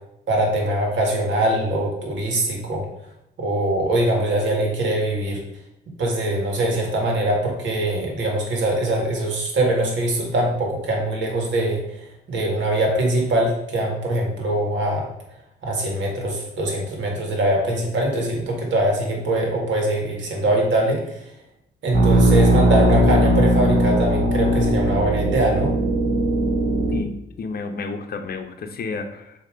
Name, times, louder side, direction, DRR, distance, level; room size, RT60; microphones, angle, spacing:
voice 1, 0.3-2.8 3.4-5.4 6.0-11.8 12.3-15.1 15.6-21.0 21.8-25.7, right 1 dB, 70° right, 0 dB, 1.9 m, -22 dB
sound 1, 21.9-27.0, right 1 dB, 45° right, 1.0 m, -19 dB
voice 2, 26.9-29.3, left 4 dB, 50° left, 6 dB, 0.8 m, -31 dB
6.8 x 2.9 x 5.1 m, 0.83 s
cardioid pair, 90°, 20 cm